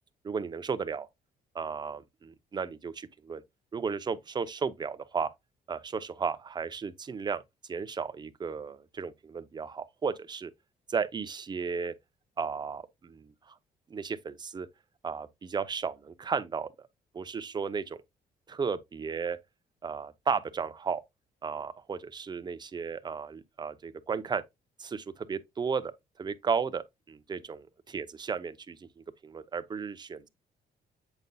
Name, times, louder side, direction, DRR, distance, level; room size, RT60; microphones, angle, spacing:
voice 1, 0.2-1.1 1.5-3.4 3.7-5.3 5.7-7.4 7.7-10.5 10.9-11.9 12.4-13.5 13.9-14.7 15.0-16.9 17.1-18.0 18.5-19.4 19.8-21.0 21.4-24.4 24.8-25.9 26.2-30.3, right 5 dB, 30° right, 0.6 m, -34 dB
8.0 x 5.3 x 2.2 m
cardioid pair, 125°, 16 cm